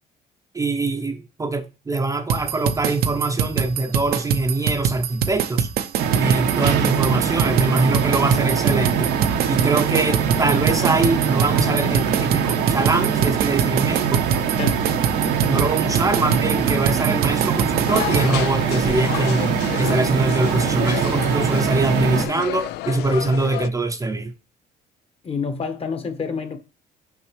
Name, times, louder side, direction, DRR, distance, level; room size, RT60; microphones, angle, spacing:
voice 1, 0.5-5.7 6.2-9.1 9.5-14.2 15.4-24.3, right 2 dB, 20° right, 0.6 m, -23 dB
sound 1, 2.3-18.3, right 7 dB, 70° right, 0.7 m, -23 dB
sound 2, 6.0-22.3, right 7 dB, 85° right, 1.0 m, -23 dB
sound 3, 17.8-23.7, left 15 dB, 80° left, 0.4 m, -30 dB
voice 2, 25.2-26.6, left 5 dB, 35° left, 1.2 m, -27 dB
5.9 x 5.4 x 3.1 m
cardioid pair, 110°, 17 cm